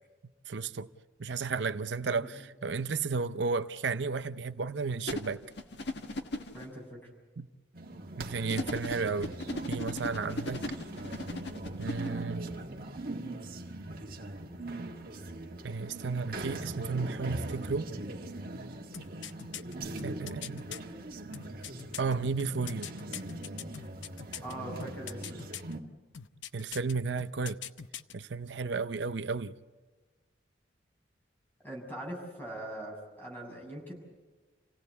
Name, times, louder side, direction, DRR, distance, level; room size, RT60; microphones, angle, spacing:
voice 1, 0.5-0.9 1.2-5.4 7.4-7.5 8.2-9.3 9.7-10.6 11.8-12.4 15.6-17.9 20.0-20.6 22.0-22.9 26.5-27.6 28.1-29.5, right 4 dB, 75° right, 0.6 m, -33 dB
sound 1, 5.1-6.7 8.5-12.1, left 1 dB, 70° left, 1.7 m, -37 dB
voice 2, 6.5-7.1 24.4-25.5 31.6-33.9, right 1 dB, 10° left, 6.5 m, -42 dB
sound 2, 7.7-25.8, right 2 dB, 50° right, 1.8 m, -41 dB
sound 3, 18.9-20.8 21.3-24.5 24.8-25.7 26.1-26.9 27.2-28.1 28.4-28.5, left 9 dB, 90° left, 0.8 m, -42 dB
28.0 x 17.0 x 8.2 m
head